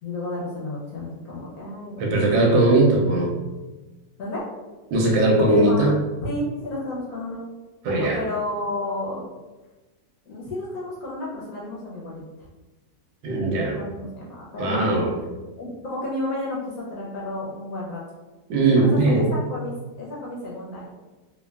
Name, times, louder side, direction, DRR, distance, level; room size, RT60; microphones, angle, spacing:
voice 1, 0.0-2.1 4.2-4.4 5.4-5.9 6.2-7.5 8.0-9.2 10.3-12.2 13.5-15.1 15.6-18.0 18.8-20.9, left 2 dB, 70° left, -5 dB, 0.9 m, -32 dB
voice 2, 2.0-3.3 4.9-6.0 7.8-8.2 13.2-13.8 14.6-15.1 18.5-19.3, right 2 dB, 90° right, -2 dB, 1.3 m, -19 dB
3.3 x 2.2 x 2.2 m, 1.2 s
omnidirectional pair, 2.0 m